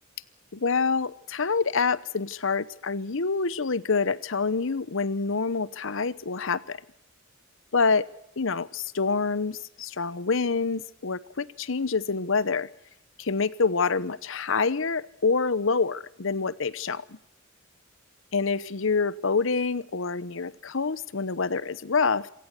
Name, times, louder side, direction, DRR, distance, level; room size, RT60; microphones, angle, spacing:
voice 1, 0.5-6.8 7.7-8.1 8.4-12.7 13.2-17.2 18.3-22.3, left 4 dB, 65° left, 19 dB, 0.9 m, -26 dB
27.0 x 17.5 x 8.2 m, 0.77 s
head